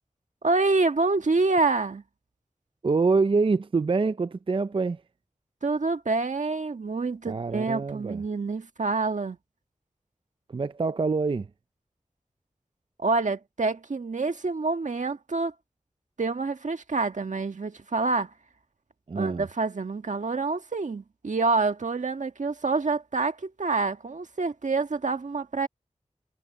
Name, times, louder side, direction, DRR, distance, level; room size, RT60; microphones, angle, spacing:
voice 1, 0.4-2.0 5.6-9.4 13.0-15.5 16.2-18.3 19.1-25.7, right 3 dB, 75° right, 1.6 m, -27 dB
voice 2, 2.8-5.0 7.3-8.2 10.5-11.5 19.1-19.5, right 4 dB, 45° right, 0.4 m, -25 dB
wide cardioid pair, 45°, 13 cm